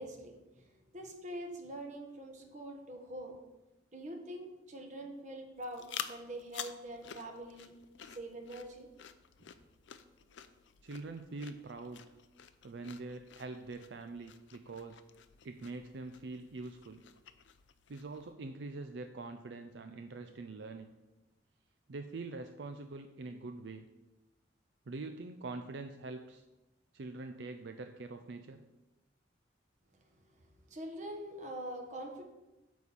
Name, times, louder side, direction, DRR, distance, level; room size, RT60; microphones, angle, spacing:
voice 1, 0.0-3.4 3.9-7.7 8.1-8.9 29.9-32.2, right 1 dB, 40° right, 3 dB, 1.3 m, -44 dB
sound 1, 5.6-18.3, left 9 dB, 80° left, 0.5 m, -50 dB
voice 2, 10.8-12.0 12.6-15.0 15.4-17.0 17.9-20.9 21.9-23.9 24.9-26.4 26.9-28.6, right 3 dB, 70° right, 7 dB, 0.5 m, -44 dB
9.2 x 4.2 x 7.0 m, 1.0 s
head